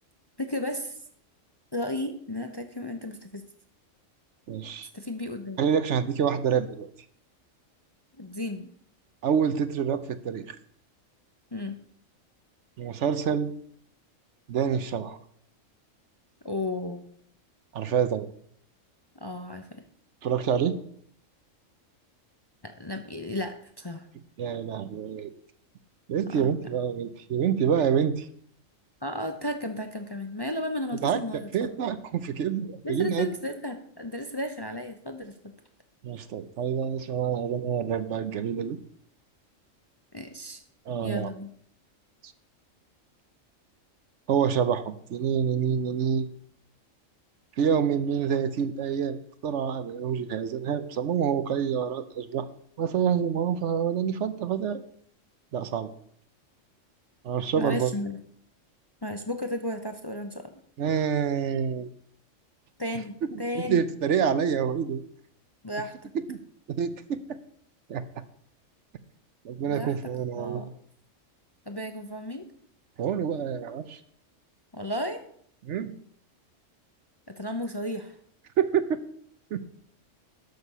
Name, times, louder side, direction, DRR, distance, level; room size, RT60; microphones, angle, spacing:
voice 1, 0.4-1.0 1.7-3.4 4.9-5.6 8.2-8.7 11.5-11.8 16.4-17.0 19.2-19.7 22.6-24.1 26.3-26.5 29.0-31.7 32.8-35.3 40.1-40.6 40.9-41.5 57.6-58.2 59.0-60.6 62.8-63.8 65.6-66.1 69.7-69.9 70.4-70.7 71.7-72.4 74.7-75.2 77.3-78.1, left 1 dB, 25° left, 6 dB, 0.7 m, -34 dB
voice 2, 4.5-4.9 5.6-6.9 9.2-10.6 12.8-13.5 14.5-15.2 17.7-18.3 20.2-20.7 24.4-25.3 26.1-28.3 31.0-31.2 31.5-33.3 36.0-38.8 40.9-41.3 42.2-42.3 44.3-46.3 47.6-49.2 49.4-52.5 52.8-54.8 55.5-55.9 57.2-57.9 60.8-61.9 63.3-65.0 66.3-66.4 66.7-67.4 67.9-68.1 69.4-70.7 73.0-74.0 75.6-75.9 78.6-79.0 79.5-79.6, right 7 dB, 65° right, 12 dB, 1.0 m, -27 dB
11.5 x 6.5 x 5.4 m, 0.63 s
omnidirectional pair, 1.4 m